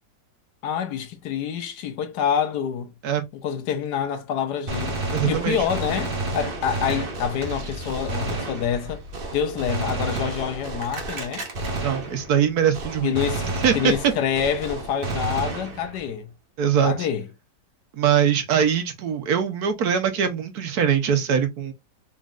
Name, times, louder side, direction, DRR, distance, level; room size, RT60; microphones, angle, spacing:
voice 1, 0.6-2.9 3.3-9.0 9.3-11.5 13.0-13.5 13.7-16.3 16.8-17.2, left 8 dB, 70° left, 1.2 m, -27 dB
Gunshot gunfire, 4.7-12.5 12.7-16.1, right 2 dB, 40° right, 1.0 m, -30 dB
voice 2, 5.1-5.6 11.8-13.1 13.6-14.1 16.6-17.1 17.9-21.7, right 8 dB, 65° right, 1.2 m, -22 dB
4.1 x 3.9 x 2.4 m
omnidirectional pair, 1.9 m